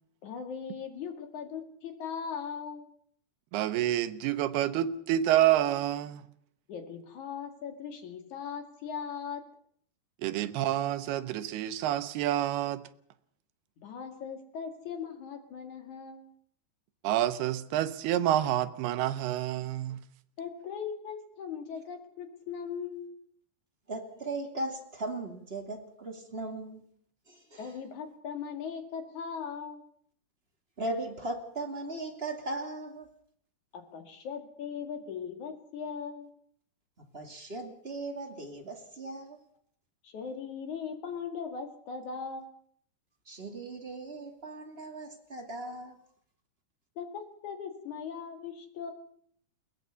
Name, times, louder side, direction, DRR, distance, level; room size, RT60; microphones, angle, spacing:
voice 1, 0.2-2.9 6.7-9.4 13.8-16.3 20.4-23.2 27.6-29.8 33.7-36.3 40.0-42.6 47.0-48.9, left 6 dB, 55° left, 7 dB, 3.2 m, -39 dB
voice 2, 3.5-6.2 10.2-12.8 17.0-20.0, right 12 dB, 80° right, 12 dB, 3.0 m, -28 dB
voice 3, 23.9-26.9 27.3-27.8 30.8-33.1 37.0-39.4 43.3-46.0, right 2 dB, 20° right, 3 dB, 2.0 m, -38 dB
22.0 x 18.5 x 6.8 m, 0.63 s
omnidirectional pair, 4.5 m